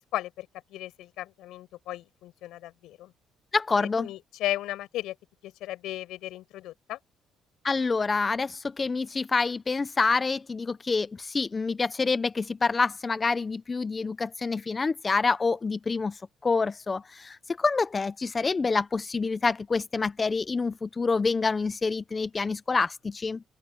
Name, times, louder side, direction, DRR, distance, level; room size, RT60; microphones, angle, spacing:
voice 1, 0.1-3.1 3.8-5.2 5.4-7.0, left 15 dB, 85° left, 5.3 m, -35 dB
voice 2, 3.5-4.1 7.6-23.4, left 4 dB, 25° left, 0.5 m, -27 dB
cardioid pair, 125°, 0 cm